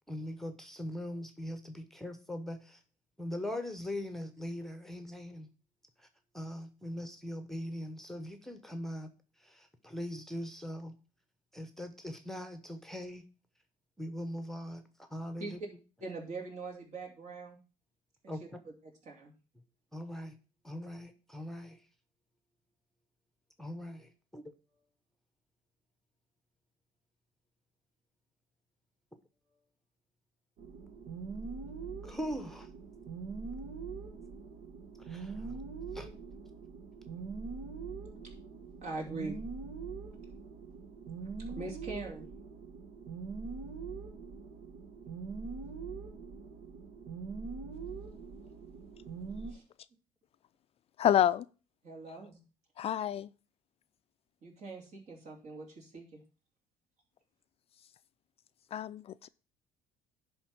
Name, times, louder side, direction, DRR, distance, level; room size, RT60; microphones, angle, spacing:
voice 1, 0.1-2.8 3.2-5.5 6.3-9.1 9.4-10.9 11.5-13.2 14.0-14.8 15.1-15.6 18.3-18.4 19.9-20.3 20.6-21.8 23.6-24.4 32.0-32.7 35.0-35.6 35.9-36.1, left 1 dB, 5° left, 0.9 m, -41 dB
voice 2, 16.0-17.6 18.2-19.3 38.2-38.3 38.8-39.4 41.5-42.3 49.5-49.6 51.8-52.4 54.4-56.2, right 3 dB, 55° right, 3.1 m, -42 dB
sound 1, 30.6-49.5, right 4 dB, 70° right, 1.5 m, -43 dB
voice 3, 51.0-51.5 52.8-53.3 58.7-59.3, left 10 dB, 45° left, 0.4 m, -28 dB
10.5 x 3.6 x 6.0 m
cardioid pair, 105°, 14 cm